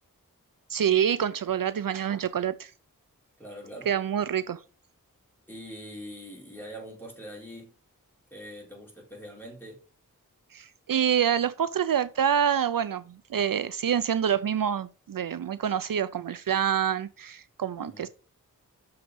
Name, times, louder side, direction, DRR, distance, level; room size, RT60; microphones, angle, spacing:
voice 1, 0.7-2.7 3.9-4.6 10.5-13.0 13.3-18.1, right 9 dB, 70° right, 0.5 m, -26 dB
voice 2, 3.4-3.9 5.5-7.7 8.3-9.8 17.8-18.0, equal, 5° left, 4.8 m, -43 dB
6.5 x 5.7 x 5.2 m
wide cardioid pair, 70°, 35 cm